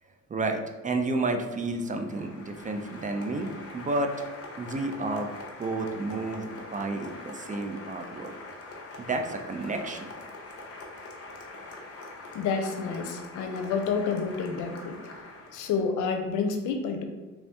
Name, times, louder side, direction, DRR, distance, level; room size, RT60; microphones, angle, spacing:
voice 1, 0.3-4.1 4.6-5.3 5.6-8.3 9.0-10.1, right 2 dB, 25° right, 5 dB, 0.4 m, -31 dB
Applause, 1.4-15.9, left 2 dB, 50° left, 0.8 m, -44 dB
voice 2, 12.3-15.0 15.5-17.0, left 5 dB, 85° left, 5 dB, 0.6 m, -29 dB
3.4 x 2.6 x 3.4 m, 1.2 s
cardioid pair, 90°, 30 cm